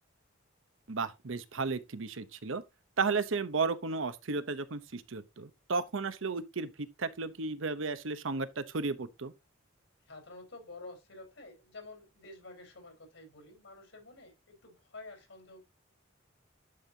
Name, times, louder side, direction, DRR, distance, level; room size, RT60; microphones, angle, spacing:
voice 1, 0.9-2.6 3.0-9.3, right 4 dB, 75° right, 0.9 m, -34 dB
voice 2, 10.1-15.6, left 2 dB, 70° left, 4.4 m, -50 dB
11.5 x 5.4 x 2.8 m
head